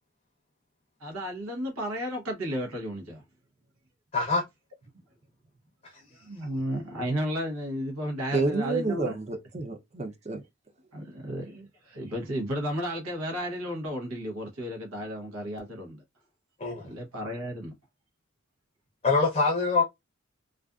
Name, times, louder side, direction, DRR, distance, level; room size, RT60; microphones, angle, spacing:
voice 1, 1.0-3.2 6.1-9.2 10.9-16.0 16.8-17.7, equal, 90° right, 0.9 m, -33 dB
voice 2, 4.1-4.4 16.6-16.9 19.0-19.8, left 4 dB, 30° left, 0.6 m, -24 dB
voice 3, 8.3-10.4, right 3 dB, 30° right, 0.5 m, -29 dB
2.4 x 2.4 x 2.3 m
head